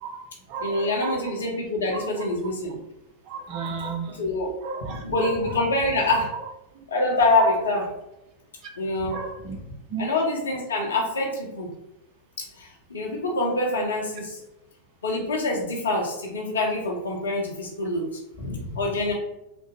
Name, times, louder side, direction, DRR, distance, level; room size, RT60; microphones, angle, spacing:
voice 1, 0.0-1.3 1.9-2.3 3.3-4.2 4.6-5.6 6.8-6.9 7.4-7.5 9.1-9.6 9.9-10.1, right 5 dB, 40° right, 3 dB, 0.5 m, -34 dB
voice 2, 0.6-2.8 4.2-4.6 4.9-6.3 6.9-7.9 8.8-9.2 10.0-11.7 12.6-14.4 15.0-19.1, left 2 dB, 70° left, -1 dB, 0.8 m, -25 dB
3.3 x 2.0 x 3.3 m, 0.89 s
figure-of-eight pair, 90°, 0 cm